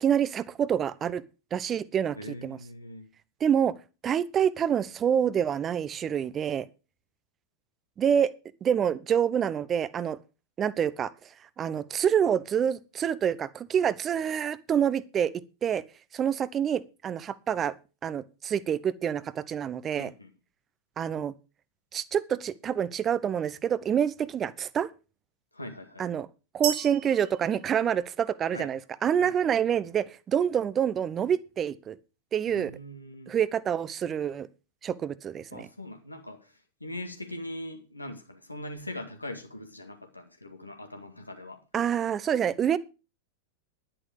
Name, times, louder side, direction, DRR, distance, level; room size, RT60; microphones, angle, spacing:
voice 1, 0.0-1.2 1.5-2.2 2.4-2.6 3.4-3.7 4.0-6.7 8.0-8.3 8.6-10.2 10.6-11.1 11.6-15.3 15.6-15.8 16.1-17.7 18.0-20.1 21.0-21.3 21.9-24.9 26.0-26.3 26.5-32.0 32.3-32.7 33.3-34.5 34.8-35.7 41.7-42.8, right 8 dB, 25° right, 0.9 m, -27 dB
voice 2, 2.2-3.1 20.0-20.3 25.5-26.1 28.5-28.7 29.2-29.4 32.5-33.4 35.5-41.6, left 1 dB, 85° left, 2.1 m, -41 dB
sound 1, 26.6-28.6, right 9 dB, 50° right, 2.7 m, -36 dB
11.0 x 10.0 x 5.0 m
figure-of-eight pair, 90°, 0 cm